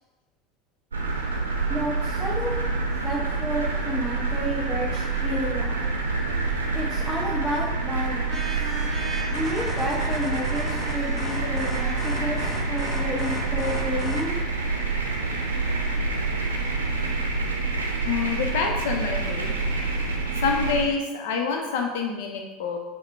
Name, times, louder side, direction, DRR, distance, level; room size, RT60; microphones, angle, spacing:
sound 1, 0.9-20.9, right 3 dB, 80° right, 0.6 m, -27 dB
voice 1, 1.7-2.6 3.0-5.8 6.7-8.7 9.3-14.4, equal, 15° left, -9 dB, 1.1 m, -31 dB
sound 2, 8.3-13.0, right 3 dB, 25° right, 0.7 m, -40 dB
sound 3, 9.3-14.4, left 3 dB, 30° left, 1.0 m, -36 dB
voice 2, 18.0-19.6 20.4-22.8, left 5 dB, 65° left, 2 dB, 0.7 m, -27 dB
4.9 x 2.2 x 4.2 m, 1.2 s
figure-of-eight pair, 70°, 0 cm